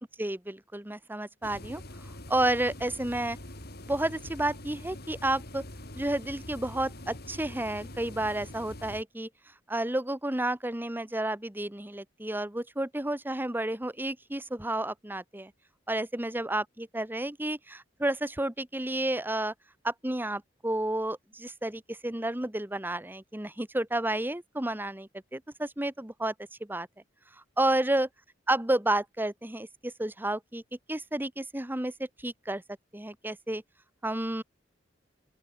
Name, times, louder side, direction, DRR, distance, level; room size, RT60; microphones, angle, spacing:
voice 1, 0.2-1.8 2.3-3.4 3.9-5.6 5.9-9.3 9.7-15.5 15.9-19.5 19.8-26.3 26.6-26.9 27.6-28.1 28.5-30.6 30.9-31.9 32.2-32.6 32.9-33.6 34.0-34.4, right 1 dB, 10° right, 1.2 m, -31 dB
sound 1, 1.4-9.0, left 1 dB, 60° left, 7.4 m, -44 dB
open air
head